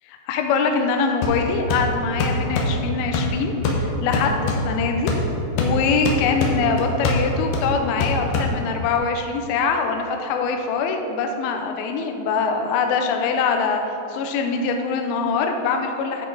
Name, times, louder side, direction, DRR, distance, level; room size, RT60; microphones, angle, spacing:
voice 1, 0.1-5.1 5.6-13.8 14.1-16.3, left 5 dB, 90° left, 4 dB, 2.2 m, -23 dB
sound 1, 1.2-9.0, left 2 dB, 70° left, 2.6 m, -25 dB
10.5 x 6.0 x 4.1 m, 2.9 s
omnidirectional pair, 5.1 m